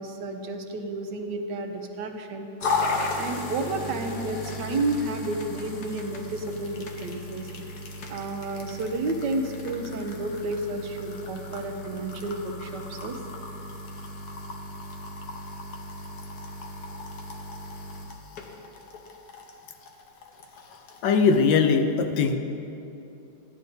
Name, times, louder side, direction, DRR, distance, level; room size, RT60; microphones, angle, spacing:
voice 1, 0.0-2.5 3.2-7.5 8.1-13.2, right 2 dB, 80° right, 5 dB, 1.4 m, -31 dB
sound 1, 2.6-21.4, left 2 dB, 65° left, 1.3 m, -36 dB
voice 2, 21.0-22.4, left 5 dB, 85° left, 6 dB, 1.4 m, -20 dB
13.5 x 10.0 x 2.7 m, 2.8 s
omnidirectional pair, 1.9 m